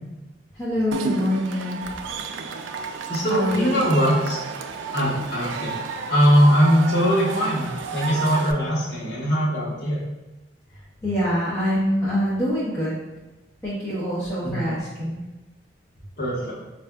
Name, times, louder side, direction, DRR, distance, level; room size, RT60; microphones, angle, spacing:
voice 1, 0.6-1.8 3.3-3.8 11.0-13.0 13.6-15.2, equal, 15° left, -11 dB, 0.7 m, -25 dB
Cheering / Crowd, 0.9-8.5, right 4 dB, 75° right, 0.3 m, -31 dB
voice 2, 3.1-4.4 4.9-5.7 6.1-10.0 14.4-14.7 16.2-16.5, equal, 55° left, -6 dB, 1.0 m, -21 dB
4.6 x 2.4 x 2.2 m, 1.1 s
head